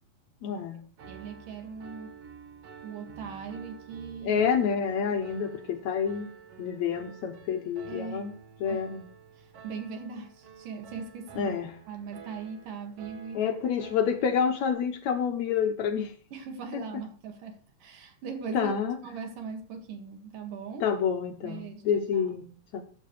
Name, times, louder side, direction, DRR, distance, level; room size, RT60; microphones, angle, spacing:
voice 1, 0.4-0.8 4.2-6.3 6.6-8.3 8.6-9.1 11.4-11.7 13.3-16.1 16.7-16.8 18.5-19.0 20.8-22.5 22.7-22.8, left 7 dB, 70° left, 7 dB, 2.0 m, -28 dB
Piano, 1.0-14.7, right 7 dB, 55° right, 2.1 m, -49 dB
voice 2, 1.1-2.1 2.8-4.4 7.9-8.3 8.7-8.8 9.4-11.5 11.9-13.5 16.3-18.7 19.0-20.9 21.4-22.3, right 5 dB, 70° right, 5 dB, 3.5 m, -40 dB
15.0 x 9.9 x 3.2 m, 0.42 s
omnidirectional pair, 3.9 m